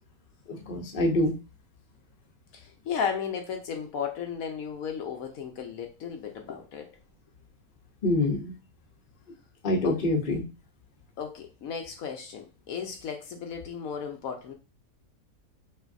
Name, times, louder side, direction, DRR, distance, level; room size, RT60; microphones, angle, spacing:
voice 1, 0.5-1.3 8.0-8.5 9.6-10.4, left 2 dB, 40° left, 2 dB, 0.9 m, -25 dB
voice 2, 2.5-7.0 9.8-10.0 11.2-14.5, left 7 dB, 70° left, 4 dB, 1.1 m, -35 dB
5.5 x 2.6 x 2.6 m, 0.28 s
omnidirectional pair, 1.6 m